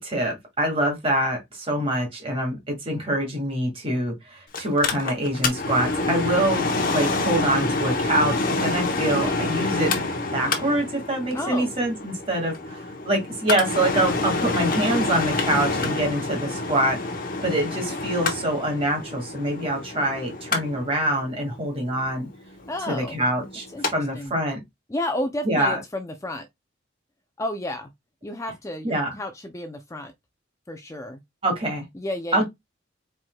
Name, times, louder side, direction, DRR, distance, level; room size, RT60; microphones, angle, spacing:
voice 1, 0.0-6.7 6.9-9.9 10.3-17.0 17.4-22.3 22.9-23.7 23.9-24.6 25.4-25.8 28.8-29.2 31.4-31.8 32.3-32.4, right 1 dB, 30° right, 2.0 m, -25 dB
Mechanical fan, 4.5-23.9 24.3-24.4, left 2 dB, 45° left, 1.0 m, -27 dB
voice 2, 11.3-11.7 22.7-23.2 23.7-24.4 24.9-26.5 27.4-27.9 28.2-30.1 30.7-31.2 31.9-32.4, left 1 dB, 15° left, 0.4 m, -32 dB
4.6 x 4.4 x 2.3 m
head